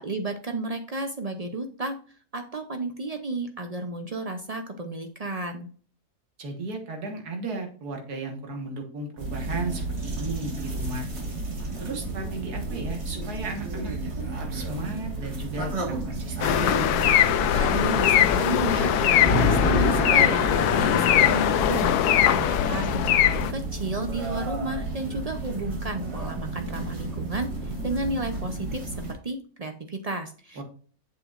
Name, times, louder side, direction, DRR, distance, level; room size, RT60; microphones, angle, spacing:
voice 1, 0.0-2.0 2.3-5.7 17.5-30.6, right 2 dB, 60° right, 6 dB, 0.4 m, -32 dB
voice 2, 6.4-11.1 11.8-16.9 30.6-30.7, right 2 dB, 90° right, 3 dB, 2.0 m, -35 dB
sound 1, 9.2-29.1, right 2 dB, 45° right, 2.0 m, -33 dB
sound 2, 16.4-23.5, left 11 dB, 90° left, 1.2 m, -21 dB
Thunder, 18.7-25.2 26.3-28.0, left 3 dB, 55° left, 2.0 m, -30 dB
8.0 x 6.8 x 2.5 m, 0.43 s
omnidirectional pair, 1.6 m